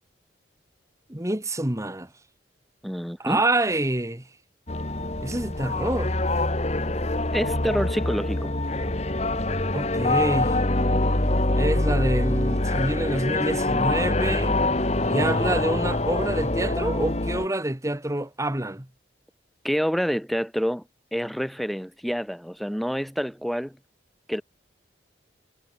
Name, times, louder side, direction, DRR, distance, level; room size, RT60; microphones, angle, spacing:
voice 1, 1.1-2.1 3.2-4.3 5.2-6.1 9.7-10.6 11.5-14.6 15.0-18.9, right 1 dB, 15° right, 1.4 m, -27 dB
voice 2, 2.8-3.4 7.3-8.5 19.6-20.8 21.1-23.8 24.3-24.4, equal, ahead, 2.2 m, -27 dB
sound 1, 4.7-17.5, left 2 dB, 35° left, 1.6 m, -25 dB
head